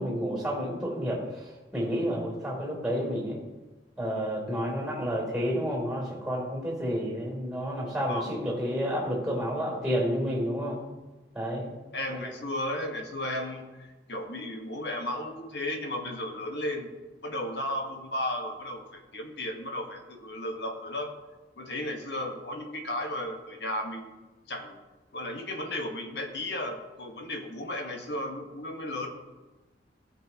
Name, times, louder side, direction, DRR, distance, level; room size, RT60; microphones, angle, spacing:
voice 1, 0.0-3.4 4.0-10.8 11.3-11.7 12.1-12.3, equal, ahead, -3 dB, 3.4 m, -30 dB
voice 2, 11.9-16.9 17.2-21.1 21.6-24.1 24.5-24.8 25.1-29.1, left 1 dB, 70° left, 3 dB, 1.4 m, -34 dB
15.5 x 6.7 x 3.0 m, 1.2 s
head